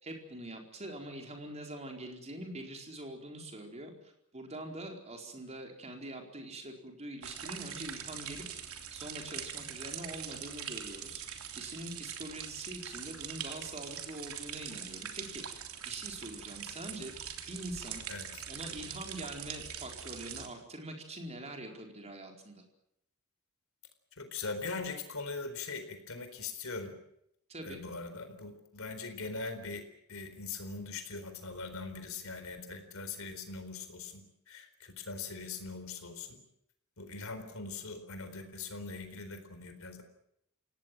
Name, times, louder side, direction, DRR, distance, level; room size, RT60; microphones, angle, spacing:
voice 1, 0.0-8.4 8.9-17.1 17.5-18.0 18.5-22.6 27.5-27.8, right 1 dB, 30° right, 3 dB, 4.5 m, -44 dB
sound 1, 7.2-20.5, right 8 dB, 70° right, 3.3 m, -43 dB
voice 2, 18.1-18.4 24.2-26.9 27.6-29.8 30.1-36.4 37.0-40.0, left 4 dB, 65° left, 8 dB, 4.2 m, -41 dB
27.5 x 18.0 x 7.7 m, 0.75 s
head